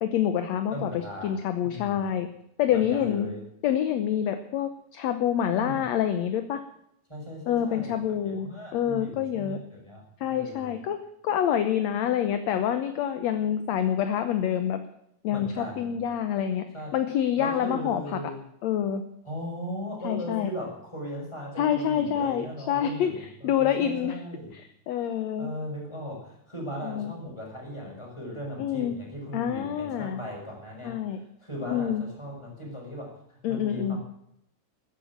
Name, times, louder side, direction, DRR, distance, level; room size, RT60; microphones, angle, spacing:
voice 1, 0.0-2.3 2.6-3.3 3.6-6.6 7.5-8.5 8.7-9.6 10.2-14.8 15.2-16.7 16.9-18.2 18.6-19.0 20.0-20.5 21.6-24.2 24.5-25.5 26.8-27.1 28.6-29.0 29.3-30.2 30.8-31.2 31.7-32.1 33.4-34.0, left 9 dB, 65° left, 9 dB, 1.9 m, -27 dB
voice 2, 0.7-1.3 1.6-2.1 2.7-3.4 5.6-5.8 7.1-10.8 15.3-16.0 16.7-16.9 17.3-18.4 19.2-24.5 25.4-31.0 31.4-33.2 33.5-34.0, equal, 10° left, -2 dB, 6.2 m, -38 dB
13.5 x 11.0 x 8.6 m, 0.75 s
omnidirectional pair, 3.8 m